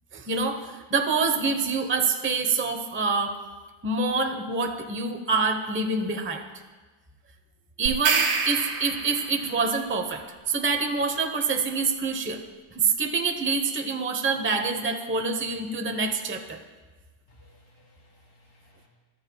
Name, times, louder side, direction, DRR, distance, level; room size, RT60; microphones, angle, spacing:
voice 1, 0.1-3.4 3.8-6.4 7.8-12.4 12.7-16.6, right 4 dB, 10° right, 5 dB, 0.6 m, -26 dB
sound 1, 7.9-9.4, right 5 dB, 85° right, 2.0 m, -26 dB
voice 2, 17.3-18.9, left 1 dB, 30° left, -3 dB, 3.1 m, -59 dB
24.0 x 13.0 x 2.4 m, 1.3 s
omnidirectional pair, 2.0 m